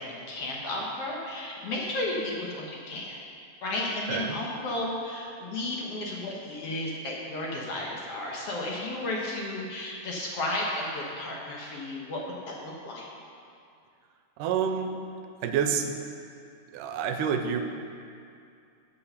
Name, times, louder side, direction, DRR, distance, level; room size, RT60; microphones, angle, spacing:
voice 1, 0.0-3.2 3.6-13.1, left 2 dB, 60° left, -2 dB, 1.9 m, -33 dB
voice 2, 4.1-4.4 14.4-14.9 15.4-15.9 16.7-17.6, right 7 dB, 90° right, 6 dB, 2.3 m, -28 dB
8.6 x 8.5 x 6.7 m, 2.4 s
omnidirectional pair, 3.7 m